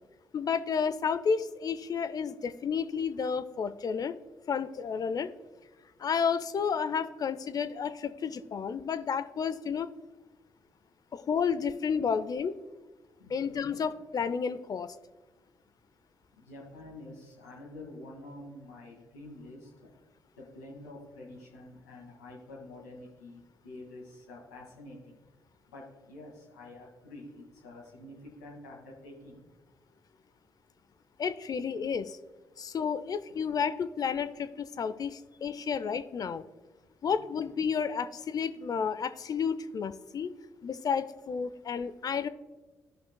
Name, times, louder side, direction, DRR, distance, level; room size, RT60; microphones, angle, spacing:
voice 1, 0.3-4.2 4.5-5.3 6.0-9.9 11.1-12.6 13.3-14.9 31.2-32.2 32.6-36.4 37.0-40.3 40.6-42.3, left 6 dB, 45° left, 11 dB, 0.6 m, -31 dB
voice 2, 13.2-13.8 16.3-19.9 20.4-25.2 25.7-29.5 37.0-37.1, left 2 dB, 90° left, -3 dB, 2.0 m, -48 dB
15.5 x 5.5 x 2.2 m, 1.2 s
hypercardioid pair, 40°, 8 cm